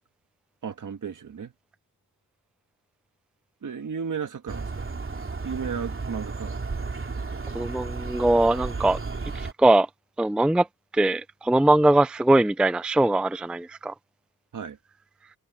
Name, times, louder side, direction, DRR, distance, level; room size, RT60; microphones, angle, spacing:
voice 1, 0.6-1.5 3.6-4.8 5.4-6.5 14.5-14.8, right 6 dB, 60° right, 1.9 m, -34 dB
sound 1, 4.5-9.5, right 4 dB, 35° right, 3.2 m, -33 dB
voice 2, 7.5-9.0 9.3-9.9 10.2-10.7 10.9-13.9, right 1 dB, 5° right, 0.4 m, -21 dB
wide cardioid pair, 110°, 35 cm